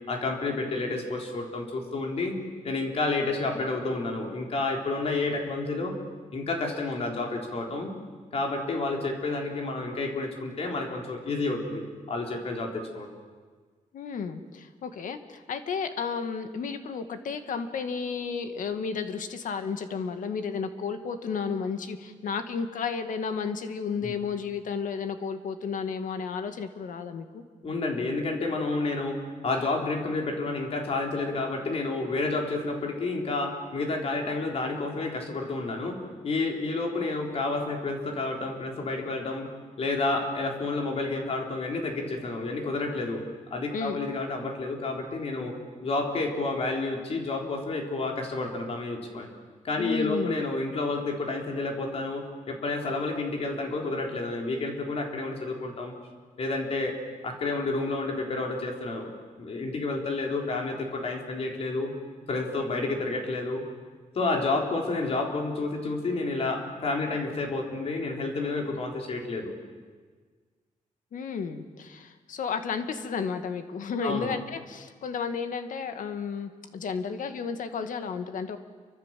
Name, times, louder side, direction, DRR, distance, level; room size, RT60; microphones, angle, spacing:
voice 1, 0.1-2.4 2.6-6.0 6.3-7.9 8.3-13.1 24.0-24.1 27.6-29.2 29.4-36.0 36.2-39.5 39.8-43.2 43.5-45.5 45.8-49.3 49.6-55.9 56.4-57.0 57.2-59.1 59.4-61.9 62.3-63.6 64.1-69.5 74.0-74.3, left 3 dB, 45° left, 1 dB, 4.2 m, -30 dB
voice 2, 13.9-27.4 43.7-44.0 49.8-50.4 71.1-78.6, left 5 dB, 75° left, 8 dB, 2.0 m, -32 dB
28.5 x 25.0 x 7.7 m, 1.5 s
wide cardioid pair, 180°, 14 cm